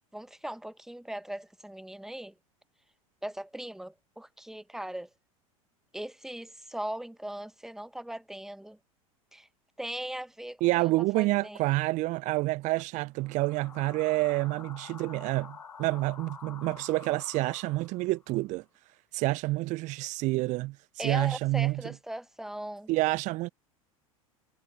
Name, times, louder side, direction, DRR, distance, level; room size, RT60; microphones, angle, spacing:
voice 1, 0.1-2.3 3.2-5.1 5.9-8.8 9.3-9.5 9.8-11.6 21.0-22.9, right 1 dB, ahead, 1.3 m, -39 dB
voice 2, 10.6-18.6 19.1-21.8 22.9-23.5, right 20 dB, 40° right, 0.6 m, -28 dB
sound 1, 13.2-18.2, left 6 dB, 85° left, 2.0 m, -48 dB
hypercardioid pair, 85°, 18 cm